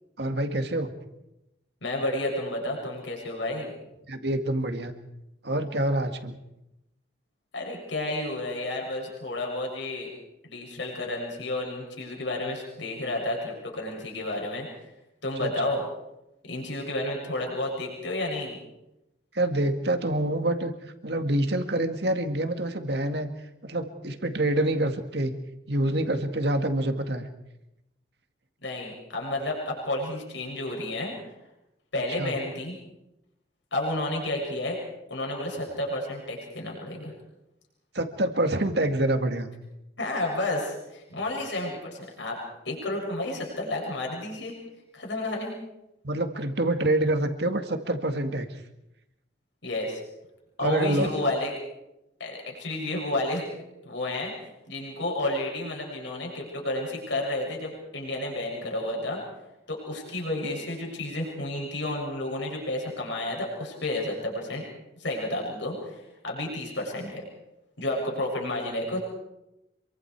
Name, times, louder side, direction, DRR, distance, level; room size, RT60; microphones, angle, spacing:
voice 1, 0.2-0.9 4.1-4.9 5.4-6.4 15.4-15.5 19.3-20.7 21.0-23.3 23.6-25.3 25.7-27.3 32.2-32.4 37.9-39.5 46.0-48.6 50.6-51.1, right 1 dB, 60° right, 7 dB, 2.1 m, -26 dB
voice 2, 1.8-3.7 7.5-10.1 10.4-14.7 15.2-15.8 16.5-18.6 28.6-31.1 31.9-32.8 33.7-34.8 35.1-37.1 40.0-42.4 42.7-44.5 44.9-45.5 49.6-50.0 50.6-51.5 52.2-53.4 53.8-59.2 59.7-64.6 65.0-66.0 66.2-67.2 67.8-69.0, left 1 dB, 80° left, -1 dB, 7.3 m, -31 dB
27.0 x 23.5 x 4.8 m, 0.91 s
head